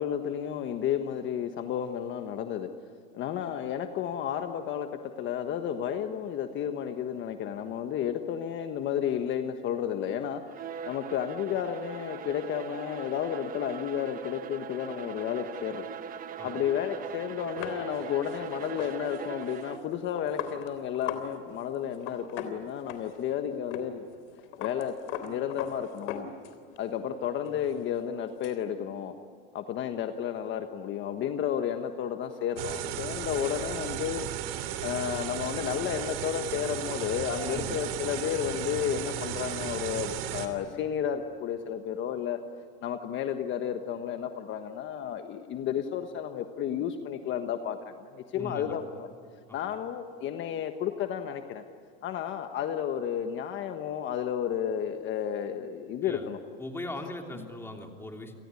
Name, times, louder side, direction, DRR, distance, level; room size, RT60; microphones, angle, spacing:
voice 1, 0.0-2.7 3.1-4.9 5.2-10.4 10.8-15.9 16.4-24.0 24.6-24.9 25.2-26.3 26.8-29.1 29.5-34.3 34.5-42.4 42.8-49.1 49.5-51.6 52.0-56.4, left 9 dB, 40° left, 6 dB, 1.4 m, -32 dB
Bowed string instrument, 10.5-20.0, right 8 dB, 30° right, 1.2 m, -41 dB
sound 1, 17.6-21.3 21.5-21.6 21.9-23.3 23.7-23.9 24.1-26.8 27.1-28.6, left 9 dB, 80° left, 3.5 m, -39 dB
sound 2, 32.6-40.5, right 10 dB, 85° right, 3.2 m, -35 dB
voice 2, 48.3-48.8 49.5-49.6 56.0-56.3 56.6-58.4, left 1 dB, 10° left, 3 dB, 3.1 m, -39 dB
29.5 x 19.0 x 9.8 m, 2.4 s
supercardioid pair, 145°, 29 cm